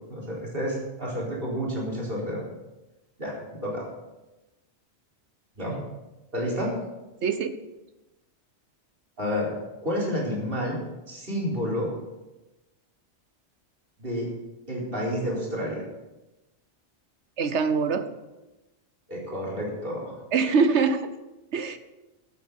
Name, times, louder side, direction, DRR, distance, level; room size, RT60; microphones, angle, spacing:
voice 1, 0.1-2.4 3.2-3.3 3.6-3.9 5.6-5.8 6.3-6.8 9.2-9.5 9.8-10.8 11.1-11.9 14.0-14.3 14.7-15.9 19.1-20.2, equal, 50° right, -5 dB, 4.6 m, -30 dB
voice 2, 7.2-7.6 17.4-18.1 20.3-21.1 21.5-21.8, right 5 dB, 75° right, 11 dB, 1.2 m, -23 dB
16.0 x 8.9 x 5.5 m, 1.0 s
omnidirectional pair, 1.2 m